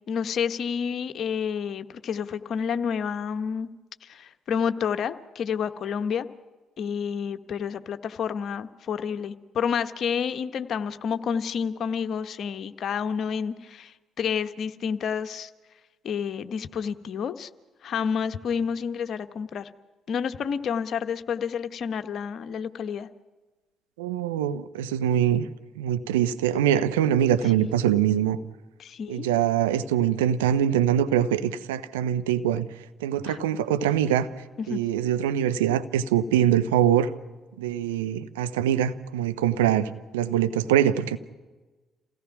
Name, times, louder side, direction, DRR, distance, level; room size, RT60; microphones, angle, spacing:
voice 1, 0.1-3.7 4.0-6.3 6.8-15.5 16.0-17.5 17.8-19.7 20.1-23.1 28.8-29.4 33.2-33.4 34.6-34.8, left 7 dB, 55° left, 10 dB, 1.1 m, -29 dB
voice 2, 24.0-25.5 25.8-28.4 29.1-32.7 33.0-34.3 34.7-37.1 37.6-41.2, right 10 dB, 85° right, 11 dB, 0.7 m, -23 dB
27.5 x 17.0 x 6.0 m, 1.2 s
hypercardioid pair, 45°, 0 cm